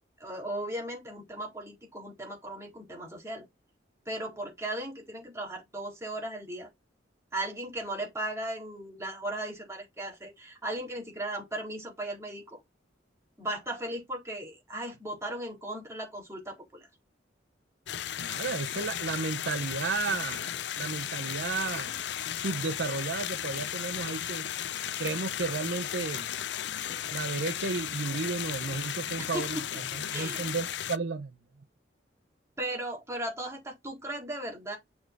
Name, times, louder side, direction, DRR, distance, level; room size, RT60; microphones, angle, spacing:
voice 1, 0.2-3.4 4.1-6.7 7.3-12.6 13.4-16.9 29.2-29.4 29.9-30.6 32.6-34.8, right 1 dB, 15° right, 4.0 m, -37 dB
sound 1, 17.9-31.0, left 10 dB, 65° left, 0.5 m, -35 dB
voice 2, 18.2-22.0 22.4-24.5 25.0-26.3 27.1-29.6 29.9-31.3, right 4 dB, 70° right, 0.7 m, -33 dB
7.2 x 4.7 x 3.8 m
head